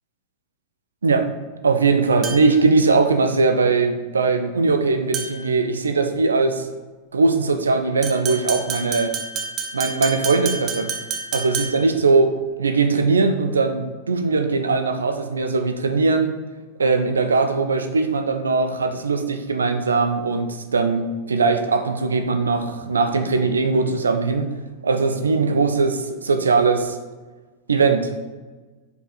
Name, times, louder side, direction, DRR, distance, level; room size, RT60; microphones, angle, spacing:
voice 1, 1.6-6.7 7.1-9.1 9.7-10.9 11.3-12.3 12.6-16.3 16.8-24.5 24.8-27.0 27.7-28.2, right 4 dB, 75° right, 6 dB, 0.7 m, -20 dB
sound 1, 2.2-2.7 5.1-5.5 8.0-12.0, right 5 dB, 30° right, 1.0 m, -29 dB
5.3 x 5.1 x 4.1 m, 1.3 s
figure-of-eight pair, 90°, 0 cm